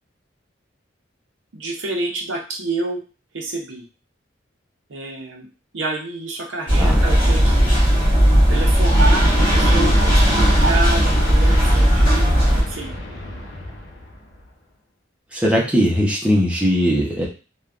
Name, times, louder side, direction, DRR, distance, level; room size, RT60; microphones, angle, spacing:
voice 1, 1.5-3.0 3.3-3.8 4.9-5.5 5.7-7.6 8.5-12.9, right 2 dB, 80° right, 1 dB, 0.6 m, -29 dB
sound 1, 6.7-12.6, equal, 40° left, 1.4 m, -15 dB
Explosion, 9.7-14.5, left 1 dB, 80° left, 0.7 m, -31 dB
voice 2, 15.3-17.3, equal, 5° right, -4 dB, 0.6 m, -19 dB
3.3 x 2.2 x 2.4 m, 0.34 s
head